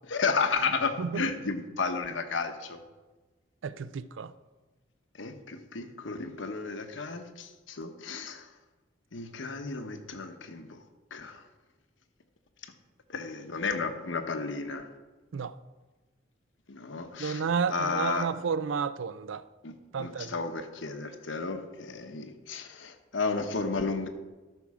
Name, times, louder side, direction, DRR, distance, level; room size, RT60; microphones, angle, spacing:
voice 1, 0.1-2.8 5.2-8.5 9.1-10.8 11.1-11.4 13.1-14.9 16.7-17.4 17.7-18.3 19.6-24.1, left 4 dB, 75° left, 0.9 m, -33 dB
voice 2, 3.6-4.3 15.3-15.6 17.2-19.5 19.9-20.3, right 6 dB, 80° right, 0.4 m, -31 dB
13.0 x 6.1 x 4.8 m
head